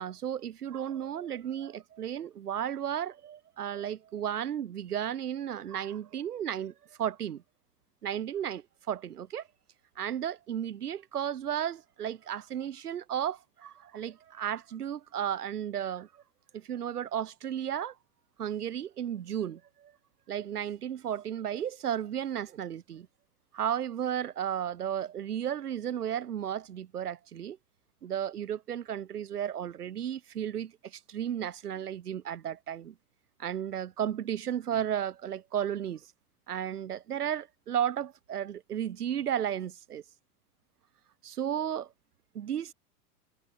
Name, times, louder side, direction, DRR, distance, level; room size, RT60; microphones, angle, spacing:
voice 1, 0.0-6.7 7.0-7.4 8.0-9.4 10.0-16.1 16.5-17.9 18.4-19.9 20.3-23.1 23.5-27.6 28.0-32.9 33.4-36.0 36.5-40.0 41.2-41.9 42.3-42.7, right 9 dB, 85° right, 2.0 m, -34 dB
hypercardioid pair, 95°, 45 cm